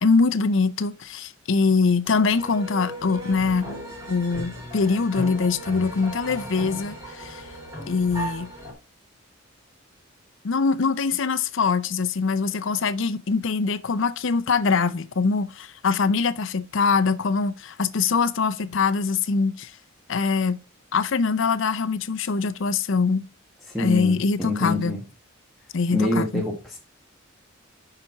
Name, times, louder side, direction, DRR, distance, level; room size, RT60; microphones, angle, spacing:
voice 1, 0.0-3.6 4.1-7.4 7.9-8.5 10.4-19.7 20.1-20.6 20.9-23.2 23.8-25.0 25.7-26.4, left 4 dB, 65° left, 0.6 m, -23 dB
sound 1, 2.0-8.7, equal, 20° right, 3.1 m, -36 dB
voice 2, 23.7-25.0 25.9-26.8, left 1 dB, ahead, 1.1 m, -26 dB
6.7 x 5.8 x 4.6 m
head